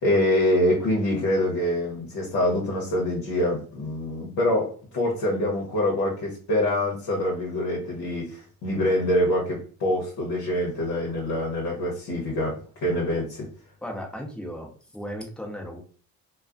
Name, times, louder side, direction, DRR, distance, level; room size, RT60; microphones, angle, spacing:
voice 1, 0.0-13.5, left 1 dB, 50° left, -2 dB, 1.0 m, -25 dB
voice 2, 13.8-15.8, equal, ahead, 0 dB, 0.8 m, -36 dB
2.3 x 2.3 x 2.4 m, 0.41 s
hypercardioid pair, 60°, 46 cm